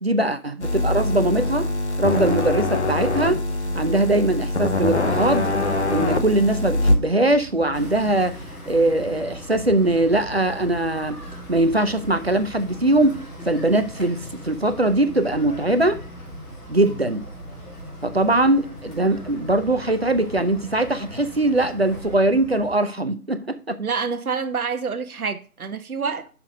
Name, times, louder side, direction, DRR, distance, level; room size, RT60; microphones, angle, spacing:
voice 1, 0.0-1.7 2.0-3.4 3.7-5.5 5.9-11.2 11.5-16.0 16.7-17.3 18.0-23.8, right 1 dB, 45° right, 0.5 m, -21 dB
sound 1, 0.6-7.0, left 2 dB, 50° left, 0.8 m, -23 dB
sound 2, 3.4-22.8, right 1 dB, ahead, 0.7 m, -42 dB
sound 3, 7.7-22.2, left 1 dB, 85° left, 3.1 m, -41 dB
voice 2, 23.8-26.3, right 5 dB, 70° right, 0.8 m, -27 dB
5.8 x 3.9 x 6.1 m
figure-of-eight pair, 170°, 45 cm